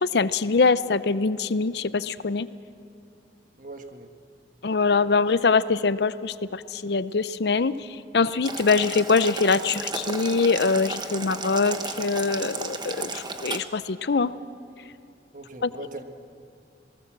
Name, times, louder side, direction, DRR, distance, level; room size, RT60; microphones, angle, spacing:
voice 1, 0.0-2.5 4.6-7.9 8.1-14.3 15.6-15.7, left 4 dB, 60° left, 15 dB, 0.6 m, -23 dB
voice 2, 3.6-4.1 15.3-16.0, right 2 dB, 45° right, 6 dB, 1.5 m, -40 dB
Boiling, 8.4-13.6, right 3 dB, 25° right, 1.2 m, -33 dB
27.5 x 18.5 x 7.4 m, 2.6 s
head